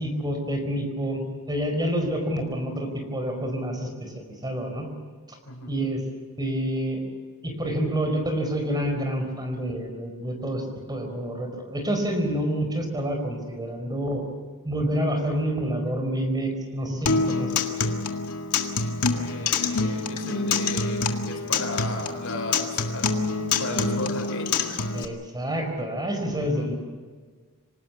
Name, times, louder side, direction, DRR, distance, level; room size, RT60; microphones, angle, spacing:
voice 1, 0.0-4.9 5.3-5.4 5.7-6.0 6.4-7.0 7.4-14.2 14.6-17.6 24.9-26.8, equal, 20° right, 5 dB, 4.6 m, -28 dB
Acoustic guitar, 17.1-25.0, left 4 dB, 90° left, 1.9 m, -26 dB
voice 2, 19.1-23.2 23.6-24.5 26.3-26.7, left 2 dB, 70° left, 4 dB, 5.5 m, -35 dB
26.5 x 18.5 x 7.0 m, 1.5 s
head